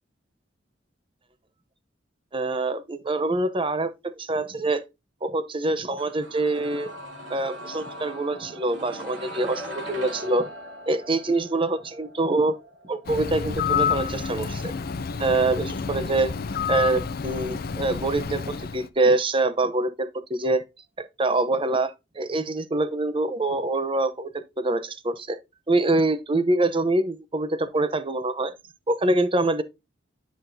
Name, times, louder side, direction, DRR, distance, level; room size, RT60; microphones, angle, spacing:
voice 1, 2.3-4.8 5.2-6.9 7.3-10.5 10.9-12.6 12.8-14.7 15.2-16.3 16.7-18.4 18.7-20.6 21.2-24.3 24.6-25.4 25.7-28.5 28.9-29.6, right 2 dB, 30° right, 0.7 m, -25 dB
sound 1, 6.0-17.8 18.1-18.2, right 1 dB, 80° right, 2.9 m, -42 dB
Bird, 13.1-18.9, left 6 dB, 50° left, 0.5 m, -29 dB
10.0 x 6.0 x 2.7 m
head